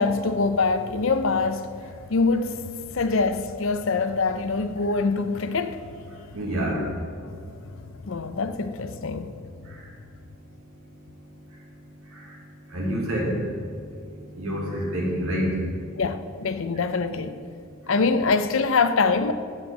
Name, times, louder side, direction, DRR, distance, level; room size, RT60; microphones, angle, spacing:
voice 1, 0.0-6.4 6.7-6.9 7.3-7.7 8.0-9.5 16.0-17.4 17.9-19.3, left 4 dB, 60° left, 0.5 m, -25 dB
voice 2, 6.3-6.8 12.1-12.2 12.7-13.4 14.3-15.6, equal, 70° right, 2.6 m, -27 dB
8.0 x 7.6 x 7.4 m
head